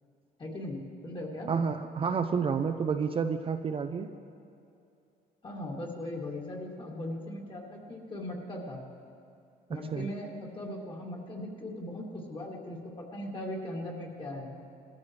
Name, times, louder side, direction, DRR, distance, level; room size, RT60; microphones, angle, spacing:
voice 1, 0.4-1.5 5.4-8.8 9.7-14.5, left 1 dB, 30° left, -1 dB, 2.5 m, -39 dB
voice 2, 1.5-4.1 9.9-10.1, right 6 dB, 35° right, 6 dB, 0.6 m, -29 dB
20.5 x 14.0 x 3.2 m, 2.6 s
cardioid pair, 110°, 17 cm